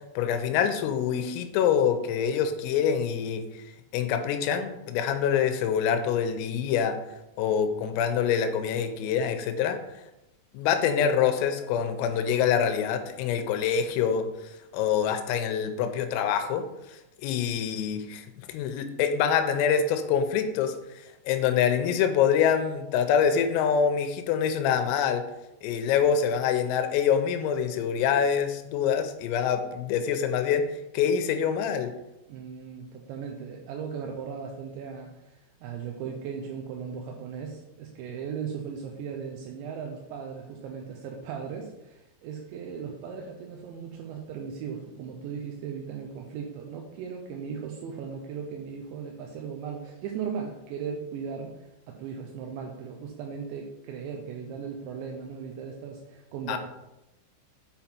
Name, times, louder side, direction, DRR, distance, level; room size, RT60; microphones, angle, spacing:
voice 1, 0.2-3.6 3.9-7.0 7.4-9.8 10.5-14.3 14.7-16.6 16.9-20.7 21.3-25.2 25.6-30.6 30.9-31.9 56.5-56.6, left 7 dB, 90° left, 7 dB, 3.3 m, -25 dB
voice 2, 32.3-56.6, right 6 dB, 80° right, 1 dB, 2.7 m, -37 dB
7.8 x 5.6 x 4.4 m, 0.92 s
omnidirectional pair, 5.9 m